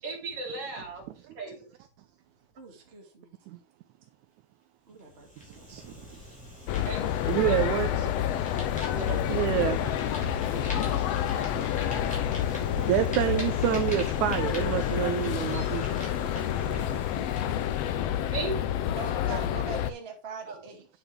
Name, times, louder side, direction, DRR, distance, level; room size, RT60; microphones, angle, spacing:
voice 1, 0.0-1.0 1.4-1.7 6.8-7.0 7.5-7.6 8.4-9.2 10.3-10.5 15.5-15.8 18.3-18.6 20.5-20.6, right 3 dB, 45° right, 4.1 m, -36 dB
voice 2, 2.6-3.4 4.9-5.7 18.9-20.9, right 4 dB, 20° right, 2.0 m, -42 dB
Fire, 5.0-18.4, equal, ahead, 4.3 m, -44 dB
sound 1, 6.7-19.9, left 10 dB, 75° left, 1.5 m, -28 dB
voice 3, 7.3-8.1 9.3-9.9 10.9-11.1 11.6-11.7 12.9-15.8, right 12 dB, 80° right, 2.0 m, -27 dB
9.1 x 8.0 x 3.3 m
omnidirectional pair, 3.6 m